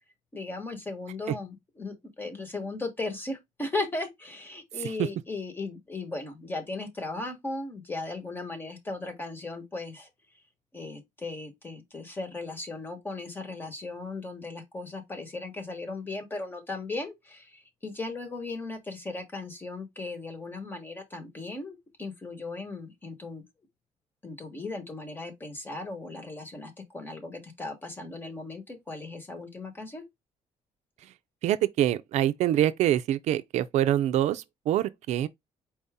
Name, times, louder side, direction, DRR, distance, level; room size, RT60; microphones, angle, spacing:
voice 1, 0.3-10.1 10.7-23.4 24.2-30.0, left 3 dB, 15° left, 1.2 m, -37 dB
voice 2, 31.4-35.3, right 12 dB, 70° right, 0.4 m, -25 dB
4.7 x 2.7 x 3.5 m
cardioid pair, 145°, 12 cm